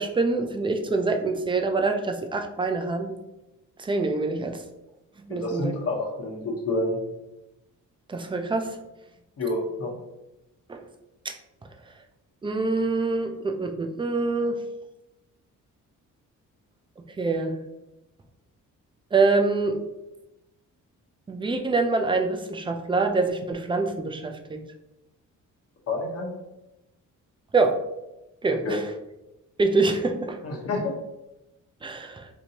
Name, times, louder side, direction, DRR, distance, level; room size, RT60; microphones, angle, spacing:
voice 1, 0.0-3.1 3.8-4.6 5.3-5.7 8.1-8.7 10.7-10.8 11.2-11.3 12.4-14.6 17.2-17.5 19.1-19.8 21.3-24.6 27.5-27.8 28.4-28.8 29.6-30.4 31.8-32.3, right 3 dB, 15° right, 4 dB, 0.4 m, -25 dB
voice 2, 5.3-7.0 9.4-9.9 25.9-26.3 28.5-28.8 30.4-31.0, left 2 dB, 50° left, -1 dB, 1.1 m, -28 dB
4.4 x 2.6 x 2.8 m, 0.95 s
cardioid pair, 115°, 32 cm